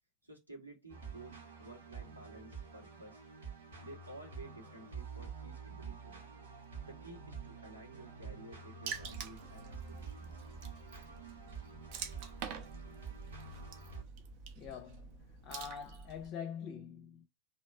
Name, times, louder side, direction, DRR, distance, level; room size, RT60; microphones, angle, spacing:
voice 1, 0.2-3.2 3.8-6.2 6.9-10.4, right 2 dB, 85° right, 1.7 m, -53 dB
sound 1, 0.9-14.0, right 5 dB, 65° right, 1.3 m, -48 dB
Water / Splash splatter, 8.9-16.3, right 6 dB, 45° right, 0.7 m, -47 dB
voice 2, 14.6-17.3, left 7 dB, 40° left, 0.5 m, -45 dB
3.1 x 2.9 x 4.5 m
figure-of-eight pair, 90°, 0 cm